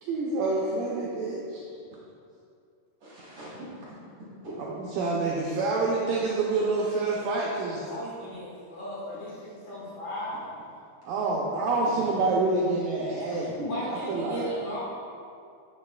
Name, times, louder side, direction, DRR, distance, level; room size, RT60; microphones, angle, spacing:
voice 1, 0.0-1.6 4.6-7.8 11.0-13.6 13.9-14.5, right 3 dB, 85° right, -4 dB, 2.0 m, -27 dB
voice 2, 3.0-3.7 4.2-4.5 11.9-12.0 13.3-13.8, equal, 60° right, -9 dB, 1.9 m, -40 dB
voice 3, 7.8-10.5 13.7-14.8, equal, 60° left, -8 dB, 2.1 m, -36 dB
9.6 x 6.7 x 2.3 m, 2.4 s
omnidirectional pair, 4.7 m